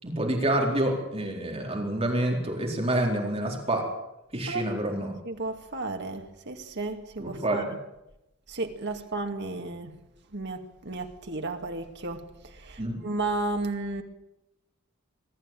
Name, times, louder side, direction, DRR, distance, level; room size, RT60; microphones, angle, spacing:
voice 1, 0.0-3.8 4.3-5.1 7.2-7.7 12.8-13.0, right 1 dB, 30° right, 4.3 m, -27 dB
voice 2, 5.2-7.8 8.5-9.9 10.3-12.3 12.6-14.0, right 2 dB, 55° right, 2.3 m, -33 dB
23.5 x 14.0 x 9.3 m
head